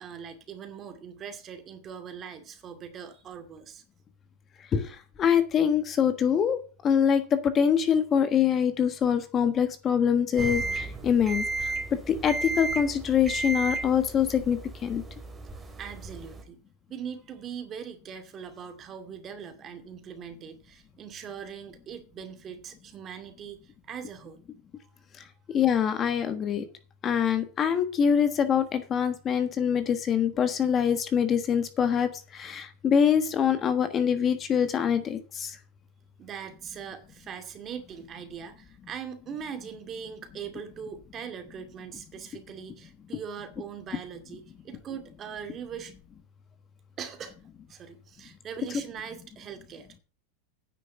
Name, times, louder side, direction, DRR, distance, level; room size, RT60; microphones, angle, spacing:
voice 1, 0.0-3.8 15.8-16.6 16.9-24.4 36.2-45.9 47.0-47.3 47.7-49.9, right 7 dB, 30° right, 2.3 m, -41 dB
voice 2, 4.7-11.7 12.1-15.0 25.5-26.6 27.0-35.6, left 8 dB, 30° left, 1.3 m, -24 dB
sound 1, 10.4-16.4, right 3 dB, 15° right, 2.4 m, -34 dB
9.9 x 6.4 x 7.8 m
supercardioid pair, 130°, 0 cm